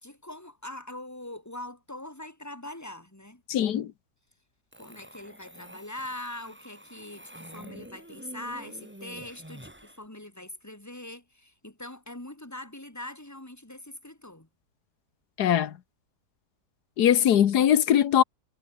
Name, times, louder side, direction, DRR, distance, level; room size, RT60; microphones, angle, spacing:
voice 1, 0.0-3.4 4.8-14.5, left 1 dB, 10° left, 3.2 m, -42 dB
voice 2, 3.5-3.9 15.4-15.7 17.0-18.2, left 10 dB, 90° left, 1.6 m, -21 dB
sound 1, 4.7-10.0, right 1 dB, 5° right, 2.4 m, -47 dB
omnidirectional pair, 1.7 m